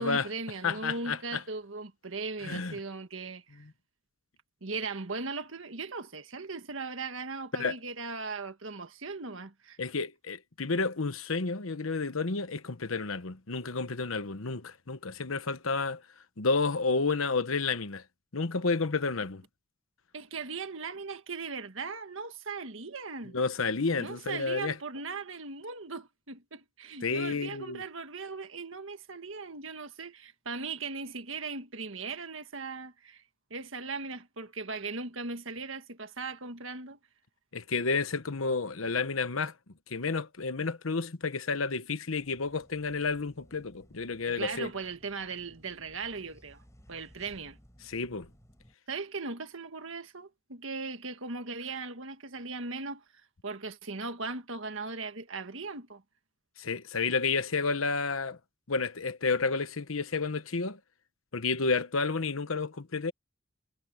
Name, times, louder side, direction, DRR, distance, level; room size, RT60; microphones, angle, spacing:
voice 1, 0.0-3.6 4.6-9.8 20.1-23.4 24.0-33.2 33.5-37.0 44.3-46.6 46.9-47.6 48.9-53.0 53.4-56.0, right 4 dB, 65° right, 1.7 m, -38 dB
voice 2, 0.6-1.4 2.4-2.8 7.5-7.8 9.8-16.0 16.4-18.0 18.3-19.4 23.3-24.8 27.0-27.8 37.5-39.5 39.9-44.7 47.8-48.3 56.6-58.4 58.7-60.8 61.3-63.1, left 4 dB, 80° left, 1.1 m, -30 dB
sound 1, 42.1-48.7, equal, 15° left, 4.2 m, -59 dB
head